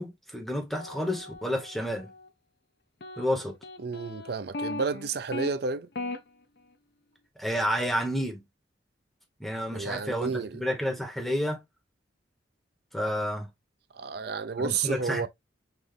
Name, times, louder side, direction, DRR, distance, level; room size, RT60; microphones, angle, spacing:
voice 1, 0.0-2.1 3.2-3.5 7.4-8.4 9.4-11.6 12.9-13.5 14.6-15.3, equal, ahead, 1.3 m, -30 dB
sound 1, 0.7-2.3 3.0-5.5 6.0-6.2, left 2 dB, 55° left, 0.7 m, -38 dB
voice 2, 3.8-5.9 9.7-10.6 13.9-15.3, right 5 dB, 55° right, 0.5 m, -31 dB
5.9 x 2.6 x 3.3 m
head